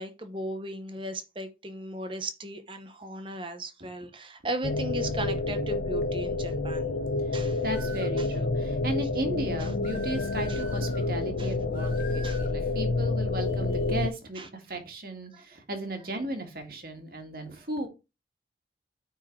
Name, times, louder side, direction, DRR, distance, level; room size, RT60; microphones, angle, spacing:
voice 1, 0.0-6.9 7.3-7.6 8.2-8.3 9.6-9.7 10.5-10.6 11.4-11.5 12.2-12.4 14.4-14.5 15.3-15.4, right 1 dB, 30° right, 1.0 m, -37 dB
sound 1, 4.6-14.1, left 2 dB, 80° left, 0.8 m, -29 dB
voice 2, 7.6-17.9, right 1 dB, 50° right, 2.1 m, -35 dB
sound 2, 7.7-8.2 9.8-11.1 11.7-12.6, equal, 50° left, 2.5 m, -44 dB
9.4 x 4.4 x 4.7 m
head